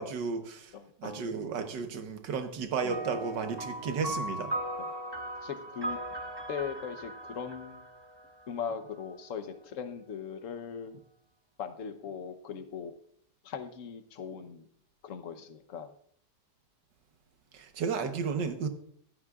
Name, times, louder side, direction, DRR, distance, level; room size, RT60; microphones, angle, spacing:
voice 1, 0.0-0.7 1.0-4.5 17.5-18.7, right 5 dB, 85° right, 7 dB, 1.8 m, -33 dB
voice 2, 0.7-1.3 2.8-3.0 4.1-4.2 4.8-4.9 5.4-6.0 6.5-7.9 8.5-11.0 11.6-12.9 13.4-14.6 15.0-15.9, left 7 dB, 55° left, 9 dB, 1.2 m, -39 dB
sound 1, 2.9-8.7, right 1 dB, 15° right, 1.1 m, -38 dB
15.5 x 12.0 x 2.4 m, 0.63 s
omnidirectional pair, 1.8 m